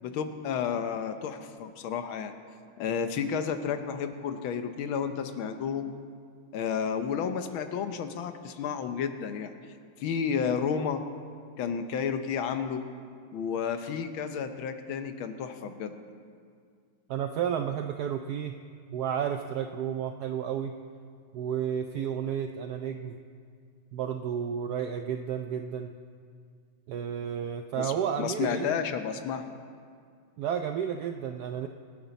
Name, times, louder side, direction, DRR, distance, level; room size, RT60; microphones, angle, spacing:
voice 1, 0.0-2.4 2.8-5.9 6.5-9.5 10.0-11.0 11.6-12.8 13.3-15.9 27.8-29.4, left 7 dB, 80° left, 8 dB, 1.6 m, -31 dB
voice 2, 17.1-18.6 18.9-20.7 21.3-23.2 23.9-25.9 26.9-28.8 30.4-31.7, right 8 dB, 80° right, 6 dB, 0.9 m, -32 dB
24.0 x 9.6 x 4.1 m, 2.2 s
omnidirectional pair, 2.2 m